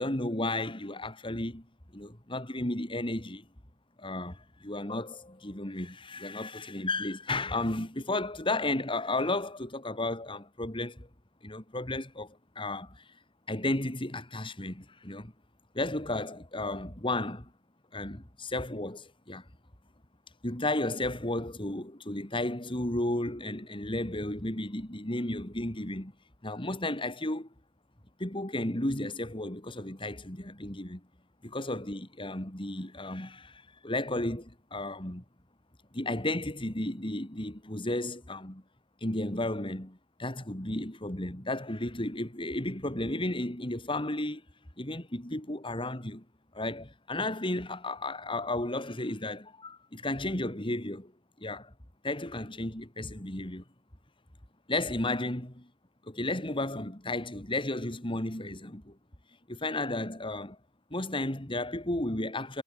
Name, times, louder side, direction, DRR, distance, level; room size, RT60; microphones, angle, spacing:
voice 1, 0.0-1.7 1.9-3.5 4.0-11.1 11.4-13.0 13.5-15.3 15.7-17.5 17.9-19.4 20.4-26.1 26.4-27.5 28.2-31.0 31.4-35.2 35.9-38.6 39.0-44.4 44.8-46.2 46.5-51.1 51.4-51.7 52.0-53.6 54.7-55.7 56.1-59.0 59.5-60.6 60.9-62.6, left 2 dB, 25° left, 3.0 m, -33 dB
head